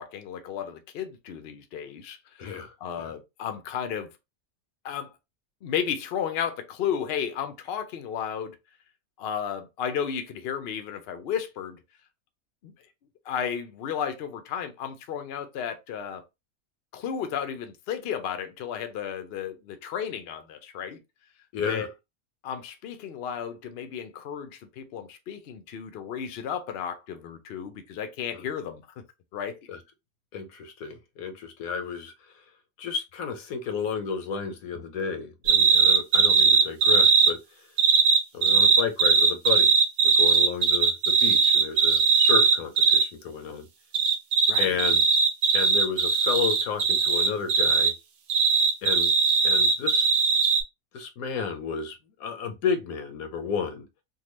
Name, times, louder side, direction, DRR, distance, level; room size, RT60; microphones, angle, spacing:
voice 1, 0.0-2.5 2.8-4.1 4.8-5.1 5.6-8.6 9.2-11.8 12.6-12.7 13.3-16.2 16.9-21.0 21.7-21.9 22.4-28.8 29.3-29.6 44.5-44.9, left 8 dB, 60° left, 0.7 m, -33 dB
voice 2, 2.4-3.1 21.5-21.9 28.3-28.4 29.7-29.8 30.3-32.1 32.8-37.4 38.3-39.7 40.0-43.7 44.6-45.0 45.5-47.9 48.8-49.1 49.4-50.1 50.9-53.8, left 6 dB, 85° left, 1.2 m, -32 dB
sound 1, 35.5-37.3 37.8-43.1 43.9-47.9 48.3-50.6, right 5 dB, 90° right, 1.1 m, -20 dB
3.6 x 2.3 x 3.0 m
omnidirectional pair, 1.5 m